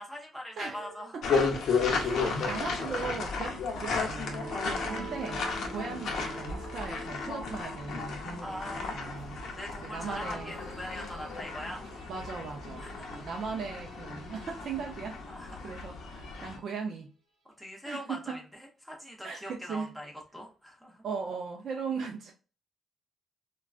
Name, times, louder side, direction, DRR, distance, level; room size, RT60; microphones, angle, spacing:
voice 1, 0.0-1.2 2.1-2.2 4.5-4.9 8.4-9.1 9.6-11.8 12.8-13.2 15.3-15.8 17.4-18.4 18.8-21.0, equal, ahead, -1 dB, 0.6 m, -42 dB
voice 2, 0.6-1.5 2.0-5.4 5.7-8.6 8.9-9.4 9.8-10.6 12.1-12.8 13.1-15.2 15.6-17.1 17.9-18.4 19.2-19.9 21.0-22.3, right 5 dB, 50° right, 1 dB, 0.4 m, -38 dB
sound 1, 1.2-16.6, left 4 dB, 65° left, 0.7 m, -34 dB
sound 2, 3.8-15.7, right 2 dB, 70° right, 0.9 m, -47 dB
3.5 x 2.2 x 2.3 m, 0.35 s
cardioid pair, 160°, 0 cm